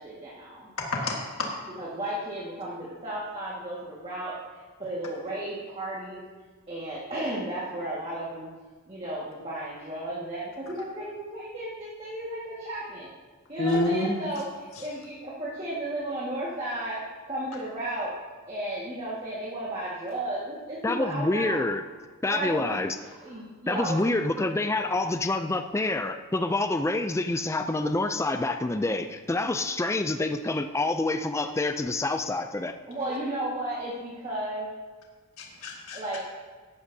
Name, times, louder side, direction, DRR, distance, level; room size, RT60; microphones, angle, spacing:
voice 1, 0.0-0.7 1.8-4.4 4.8-6.2 6.7-8.5 8.9-13.1 13.5-17.0 17.3-18.1 18.5-21.6 22.3-22.8 23.2-24.0 32.9-34.7 35.9-36.2, right 1 dB, 25° right, -7 dB, 1.7 m, -34 dB
voice 2, 0.8-1.5 13.6-14.1 35.4-36.2, left 2 dB, 70° left, -1 dB, 1.6 m, -28 dB
voice 3, 20.8-21.8 22.2-23.0 23.7-32.7, left 2 dB, 15° left, 8 dB, 0.3 m, -27 dB
14.0 x 11.5 x 2.7 m, 1.4 s
head